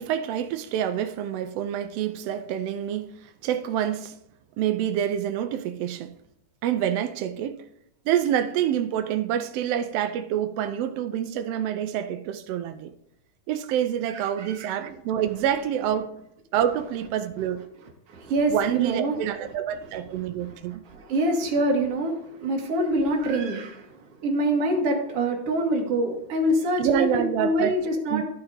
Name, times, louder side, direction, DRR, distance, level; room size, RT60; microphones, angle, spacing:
voice 1, 0.0-3.2 3.4-4.1 4.6-6.1 6.6-7.6 8.1-12.9 13.5-16.1 16.5-17.6 18.5-20.8 26.8-27.8 28.1-28.2, right 10 dB, 90° right, 1.4 m, -27 dB
voice 2, 14.1-14.8 18.1-19.2 20.1-28.2, right 1 dB, 60° right, 2.0 m, -26 dB
13.0 x 4.5 x 3.7 m
omnidirectional pair, 3.4 m